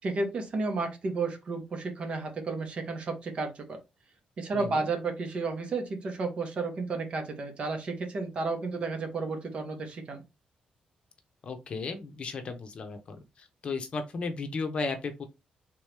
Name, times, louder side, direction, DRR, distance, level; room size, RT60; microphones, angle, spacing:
voice 1, 0.0-3.8 4.4-10.2, right 3 dB, 45° right, 1.1 m, -32 dB
voice 2, 4.5-4.9 11.4-15.2, left 4 dB, 45° left, 0.8 m, -35 dB
3.6 x 3.0 x 3.3 m
cardioid pair, 140°, 3 cm